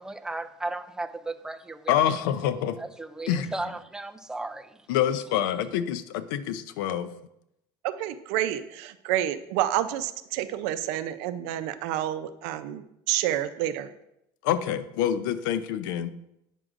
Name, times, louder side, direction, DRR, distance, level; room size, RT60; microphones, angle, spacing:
voice 1, 0.0-1.9 2.8-4.8, right 2 dB, 5° right, 0.3 m, -35 dB
voice 2, 1.9-2.8 3.3-3.5 4.9-7.1 14.4-16.1, left 10 dB, 90° left, 0.5 m, -26 dB
voice 3, 7.8-13.9, right 12 dB, 75° right, 0.5 m, -29 dB
9.0 x 6.1 x 2.5 m
cardioid pair, 140°, 11 cm